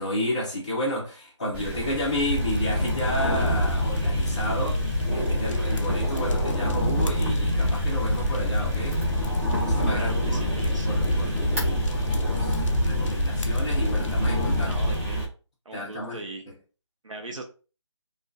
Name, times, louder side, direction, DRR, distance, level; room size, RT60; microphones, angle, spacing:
voice 1, 0.0-9.0 9.6-10.4 10.8-14.8 15.7-16.6, left 1 dB, 15° left, 0.4 m, -32 dB
sound 1, 1.5-15.3, right 1 dB, 25° right, 0.9 m, -29 dB
sound 2, 2.3-15.0, left 1 dB, 80° left, 0.4 m, -27 dB
voice 2, 9.9-10.9 14.6-15.3 15.6-16.4 17.0-17.4, right 2 dB, 80° right, 0.7 m, -39 dB
2.2 x 2.2 x 2.5 m
figure-of-eight pair, 160°, 16 cm